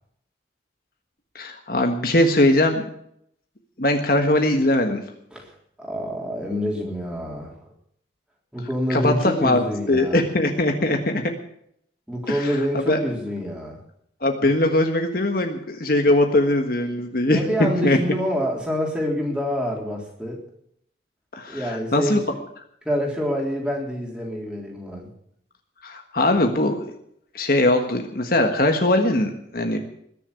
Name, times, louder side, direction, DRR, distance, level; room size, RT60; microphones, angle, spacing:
voice 1, 1.3-2.8 3.8-5.0 8.9-11.2 12.3-12.5 12.9-13.0 14.2-17.4 17.8-18.0 21.3-22.2 25.8-26.8 27.3-29.8, left 1 dB, 50° left, 4 dB, 1.5 m, -21 dB
voice 2, 5.8-7.6 8.5-10.2 12.1-13.8 17.2-20.4 21.5-22.4 22.8-25.1, equal, 5° right, -2 dB, 3.7 m, -27 dB
20.5 x 7.1 x 8.4 m, 0.71 s
head